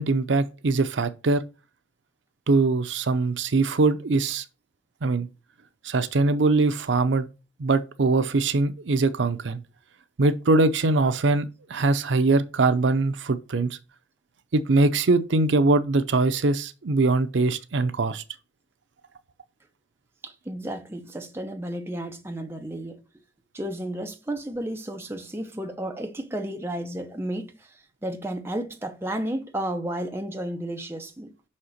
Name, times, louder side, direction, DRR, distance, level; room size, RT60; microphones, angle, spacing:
voice 1, 0.0-1.4 2.5-4.4 5.0-5.3 5.8-7.3 7.6-9.6 10.2-13.8 14.5-18.2, right 3 dB, 75° right, 0.6 m, -22 dB
voice 2, 20.2-23.0 23.5-31.3, right 1 dB, 15° right, 0.8 m, -32 dB
5.7 x 4.3 x 6.3 m
head